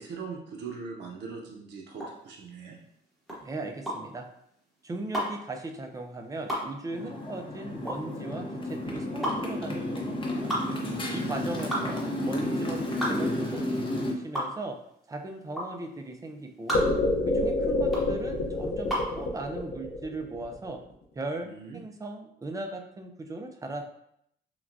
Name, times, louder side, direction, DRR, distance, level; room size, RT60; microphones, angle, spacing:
voice 1, 0.0-2.8 11.2-11.8 21.4-21.8, right 5 dB, 70° right, -1 dB, 0.7 m, -41 dB
sound 1, 1.9-19.2, equal, ahead, 0.9 m, -34 dB
voice 2, 3.4-4.3 4.8-10.5 11.1-12.8 13.1-13.7 14.0-14.8 15.1-16.8 17.3-20.8 21.2-23.8, right 2 dB, 20° right, 4 dB, 0.4 m, -38 dB
Motorcycle, 6.9-14.1, left 1 dB, 25° left, 0.7 m, -32 dB
sound 2, 16.7-20.9, left 2 dB, 70° left, 0.7 m, -27 dB
5.8 x 2.1 x 2.6 m, 0.74 s
wide cardioid pair, 160°, 18 cm